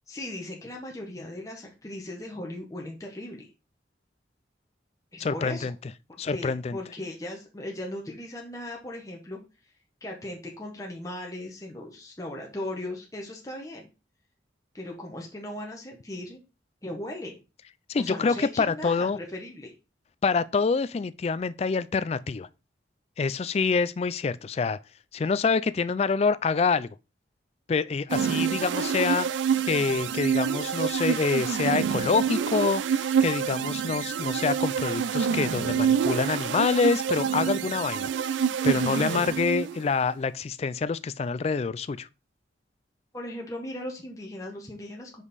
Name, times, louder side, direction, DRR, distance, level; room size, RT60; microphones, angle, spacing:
voice 1, 0.1-3.5 5.1-5.7 6.3-9.4 10.0-13.9 14.7-16.4 16.8-17.3 18.0-19.7 28.3-28.7 43.1-45.2, left 1 dB, 20° left, 1.0 m, -38 dB
voice 2, 5.2-5.7 6.2-6.8 17.9-19.2 20.2-22.5 23.2-24.8 25.1-26.9 27.7-29.3 29.7-38.1 38.6-42.1, left 4 dB, 35° left, 0.3 m, -26 dB
sound 1, 28.1-39.9, right 7 dB, 80° right, 0.4 m, -27 dB
5.3 x 5.0 x 4.1 m
head